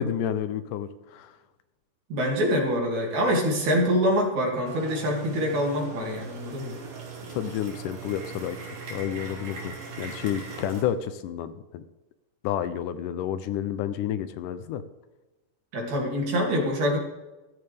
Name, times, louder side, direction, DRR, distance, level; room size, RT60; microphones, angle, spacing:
voice 1, 0.0-1.3 7.3-11.8 12.4-14.8, left 10 dB, 80° left, 12 dB, 2.2 m, -30 dB
voice 2, 2.1-6.8 15.7-17.0, equal, 60° right, -1 dB, 3.9 m, -25 dB
sound 1, 4.6-10.8, right 5 dB, 85° right, 4.3 m, -40 dB
14.5 x 14.0 x 3.5 m, 1.1 s
omnidirectional pair, 3.8 m